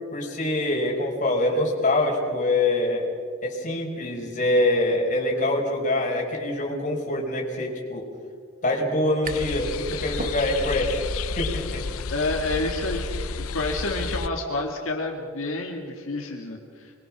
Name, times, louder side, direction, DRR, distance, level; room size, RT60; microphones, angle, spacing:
voice 1, 0.1-3.1 3.4-8.0 8.6-11.0 11.4-11.8, left 1 dB, 35° left, -1 dB, 5.0 m, -24 dB
sound 1, 9.2-14.3, left 4 dB, 80° left, 0.7 m, -31 dB
sound 2, 9.2-9.7 10.0-10.9, right 3 dB, 40° right, 1.3 m, -38 dB
voice 2, 12.1-16.9, left 2 dB, 65° left, 1 dB, 2.1 m, -29 dB
26.5 x 22.5 x 6.1 m, 2.2 s
head